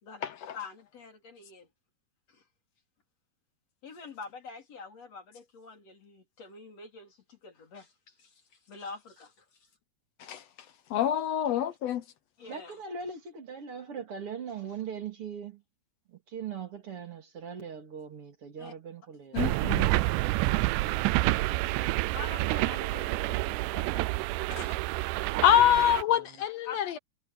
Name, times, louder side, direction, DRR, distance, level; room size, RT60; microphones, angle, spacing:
voice 1, 0.5-1.7 2.3-2.4 3.8-8.3 8.7-9.3 12.4-12.8 18.6-18.7 19.4-19.6 22.1-24.1 24.5-24.8 25.7-25.8 26.6-26.8, left 4 dB, 55° left, 4.9 m, -45 dB
voice 2, 10.9-12.0 19.3-19.9 25.4-27.0, left 10 dB, 75° left, 1.7 m, -25 dB
voice 3, 12.4-15.6 16.1-19.4 25.6-26.4, right 6 dB, 45° right, 3.4 m, -41 dB
sound 1, 19.4-26.0, right 20 dB, 85° right, 2.1 m, -28 dB
omnidirectional pair, 3.5 m